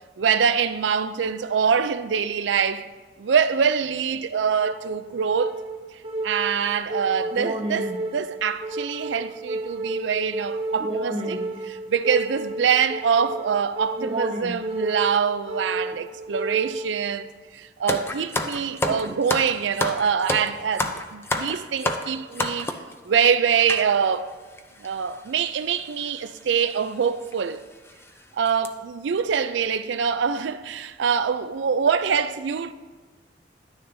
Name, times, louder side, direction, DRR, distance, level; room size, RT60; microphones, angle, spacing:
voice 1, 0.2-2.8 3.2-5.6 6.2-17.3 17.5-22.8 23.0-24.3 24.8-27.6 28.4-32.7, right 6 dB, 85° right, 0.4 m, -24 dB
sound 1, 4.3-17.3, right 2 dB, 30° right, 0.6 m, -31 dB
sound 2, 17.9-22.9 23.7-23.9 24.6-24.7 24.8-25.0 26.0-26.2 26.7-26.8 27.3-27.4 27.9-28.1 28.5-28.7, left 1 dB, 15° left, 0.4 m, -28 dB
11.0 x 9.5 x 2.7 m
head